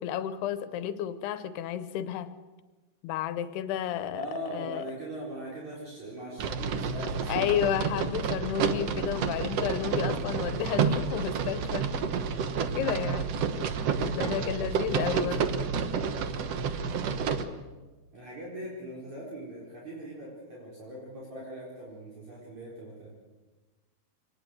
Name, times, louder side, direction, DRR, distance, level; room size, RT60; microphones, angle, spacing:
voice 1, 0.0-2.3 3.0-4.2 4.5-4.8 7.3-11.9 12.8-13.3 14.1-15.5, left 10 dB, 90° left, 12 dB, 3.0 m, -31 dB
voice 2, 4.1-7.4 7.9-8.9 12.9-13.2 14.1-14.8 15.1-15.2 16.9-17.2 18.1-23.1, right 1 dB, 45° right, -4 dB, 5.8 m, -41 dB
sound 1, 6.4-17.4, right 5 dB, 65° right, 1.5 m, -29 dB
25.0 x 19.0 x 7.8 m, 1.2 s
omnidirectional pair, 4.5 m